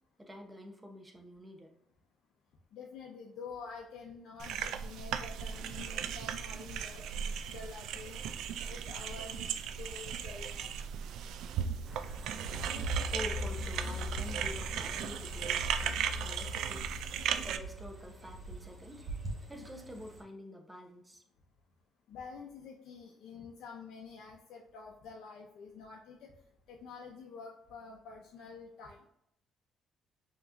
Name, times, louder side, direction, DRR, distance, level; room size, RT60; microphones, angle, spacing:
voice 1, 0.2-1.7 13.1-16.8 17.4-19.1 19.5-21.2, equal, 10° right, 3 dB, 1.0 m, -47 dB
voice 2, 2.7-8.4 8.7-9.5 9.8-10.7 22.1-26.3 26.7-29.0, left 5 dB, 70° left, -1 dB, 0.7 m, -48 dB
sound 1, 4.4-17.6, right 8 dB, 80° right, 0.3 m, -37 dB
sound 2, 11.9-20.2, equal, 35° right, 1.7 m, -41 dB
5.6 x 3.0 x 2.6 m, 0.74 s
supercardioid pair, 70°, 0 cm